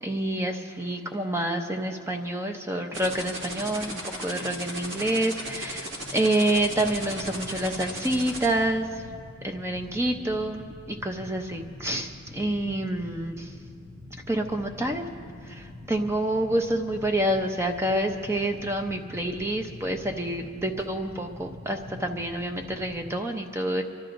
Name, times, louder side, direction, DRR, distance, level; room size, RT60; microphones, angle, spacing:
voice 1, 0.0-8.9 9.4-13.3 14.3-15.1 15.5-23.8, right 1 dB, 10° right, 4 dB, 0.6 m, -28 dB
sound 1, 2.9-8.5, right 1 dB, 55° right, 1.9 m, -35 dB
sound 2, 6.5-23.1, left 1 dB, 80° right, 4.6 m, -45 dB
30.0 x 12.5 x 2.6 m, 2.2 s
head